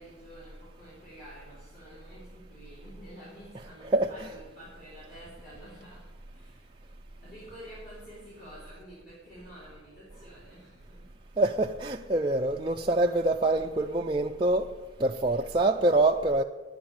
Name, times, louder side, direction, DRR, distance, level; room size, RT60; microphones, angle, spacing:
voice 1, 0.0-6.9 7.2-11.1 15.2-15.7, equal, 45° left, 4.6 m, -49 dB
voice 2, 11.4-14.7 15.0-16.4, right 2 dB, 25° right, 0.4 m, -25 dB
10.5 x 9.2 x 8.7 m
head